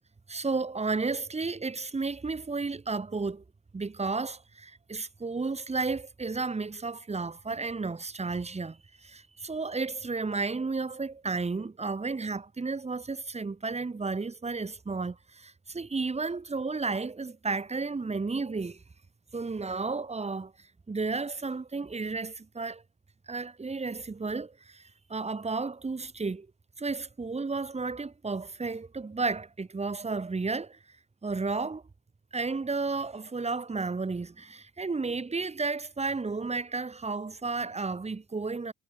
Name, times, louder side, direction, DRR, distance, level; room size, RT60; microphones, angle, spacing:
voice 1, 0.3-3.4 3.7-18.8 19.3-20.5 20.9-22.8 23.3-26.5 26.8-30.8 31.2-31.8 32.3-38.7, right 4 dB, 15° right, 1.1 m, -32 dB
cardioid pair, 85°, 38 cm